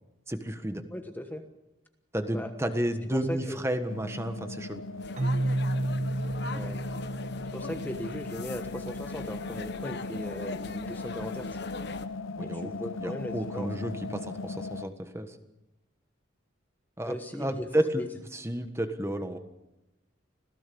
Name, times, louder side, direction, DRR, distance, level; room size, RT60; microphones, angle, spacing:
voice 1, 0.3-0.8 2.1-4.8 12.3-12.7 13.0-15.4 17.0-18.0 18.3-19.4, right 1 dB, 15° right, 8 dB, 1.4 m, -31 dB
voice 2, 0.9-1.4 2.3-2.5 3.1-3.6 6.4-6.8 7.5-11.5 12.4-13.7 17.0-17.7 18.0-18.1, equal, 10° left, 6 dB, 1.2 m, -37 dB
sound 1, 3.9-14.9, left 3 dB, 80° left, 0.7 m, -39 dB
sound 2, 5.0-12.1, left 3 dB, 55° left, 1.2 m, -41 dB
Keyboard (musical), 5.2-8.9, right 1 dB, 35° right, 1.0 m, -32 dB
26.5 x 16.5 x 7.0 m, 0.96 s
head